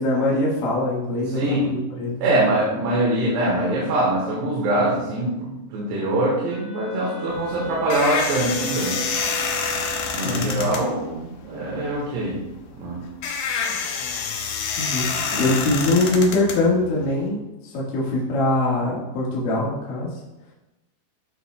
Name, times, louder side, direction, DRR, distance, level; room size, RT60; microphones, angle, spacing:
voice 1, 0.0-2.4 10.2-10.7 14.8-15.1 15.4-20.1, left 2 dB, 60° left, -6 dB, 3.0 m, -23 dB
voice 2, 1.3-1.7 2.2-9.0 10.1-12.4 12.7-13.0 15.3-15.5, right 1 dB, 80° right, -5 dB, 3.5 m, -23 dB
Wind instrument woodwind instrument, 6.5-10.3, right 5 dB, 65° right, 3.1 m, -35 dB
sound 1, 7.3-17.3, left 6 dB, 80° left, 1.9 m, -28 dB
13.0 x 5.7 x 2.2 m, 0.98 s
omnidirectional pair, 4.8 m